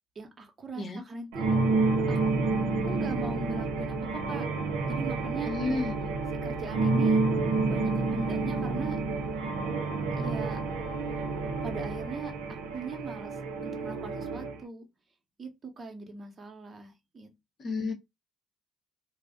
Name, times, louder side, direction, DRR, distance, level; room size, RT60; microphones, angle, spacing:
voice 1, 0.2-1.6 2.1-2.2 2.8-4.5 4.9-5.8 6.4-7.2 7.7-9.0 10.2-10.6 11.6-12.3 12.7-13.3 13.6-14.8 15.4-15.5 15.8-17.3, right 4 dB, 40° right, 0.8 m, -40 dB
sound 1, 1.3-14.6, right 3 dB, 85° right, 0.6 m, -29 dB
voice 2, 5.5-6.2 17.6-17.9, left 3 dB, 50° left, 0.8 m, -31 dB
2.4 x 2.0 x 3.6 m
supercardioid pair, 70°, 0 cm